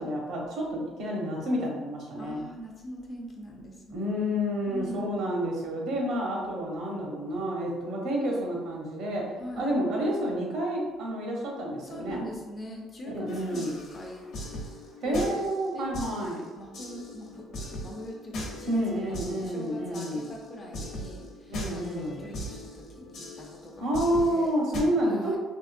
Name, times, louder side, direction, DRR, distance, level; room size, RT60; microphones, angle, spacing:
voice 1, 0.0-2.4 3.9-12.2 13.0-13.7 15.0-16.4 18.7-20.3 21.5-22.2 23.8-25.4, equal, 65° right, -2 dB, 0.9 m, -29 dB
voice 2, 2.2-4.2 4.7-5.1 9.4-9.7 11.8-14.3 15.0-15.5 15.7-16.0 16.6-23.9 24.2-24.6 25.1-25.4, equal, 25° left, 0 dB, 0.4 m, -42 dB
sound 1, 13.3-24.8, left 1 dB, 50° left, 0.7 m, -40 dB
3.6 x 2.8 x 2.5 m, 1.2 s
cardioid pair, 165°, 0 cm